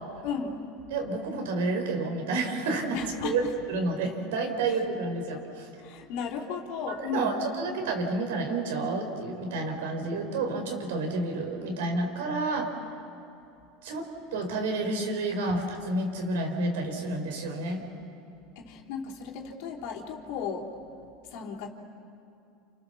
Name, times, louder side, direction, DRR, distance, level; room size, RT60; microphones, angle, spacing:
voice 1, 0.2-0.6 2.9-3.3 5.8-7.3 18.6-20.7 21.3-21.7, left 6 dB, 70° left, 0 dB, 3.5 m, -34 dB
voice 2, 0.9-5.7 6.9-12.7 13.8-14.0 14.3-17.8, right 3 dB, 90° right, 3 dB, 5.1 m, -30 dB
29.0 x 29.0 x 7.1 m, 2.8 s
supercardioid pair, 130°, 0 cm